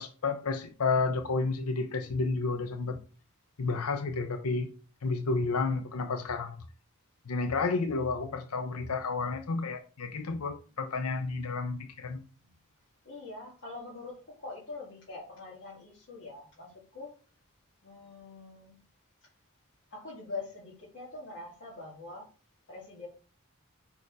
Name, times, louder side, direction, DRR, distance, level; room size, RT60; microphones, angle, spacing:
voice 1, 0.0-3.0 3.6-4.7 5.0-6.7 7.3-12.2, left 4 dB, 85° left, 0.7 m, -31 dB
voice 2, 13.0-17.1 17.8-18.8 19.9-22.3 22.7-23.1, left 3 dB, 55° left, 2.3 m, -44 dB
5.2 x 4.7 x 4.7 m
head